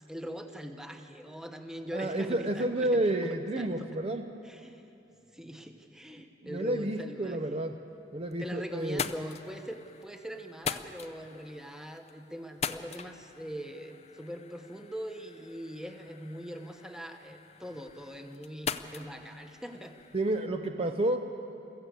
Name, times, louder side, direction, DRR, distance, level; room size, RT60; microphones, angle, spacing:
voice 1, 0.1-3.3 3.6-3.9 4.4-4.8 5.3-7.4 8.4-20.0, equal, 5° right, 5 dB, 1.1 m, -42 dB
voice 2, 1.9-4.2 6.4-7.7 8.1-9.0 20.1-21.2, right 1 dB, 35° right, 5 dB, 0.7 m, -30 dB
sound 1, 7.9-8.5 8.8-20.4, left 6 dB, 35° left, 0.6 m, -42 dB
22.5 x 15.0 x 8.3 m, 2.8 s
head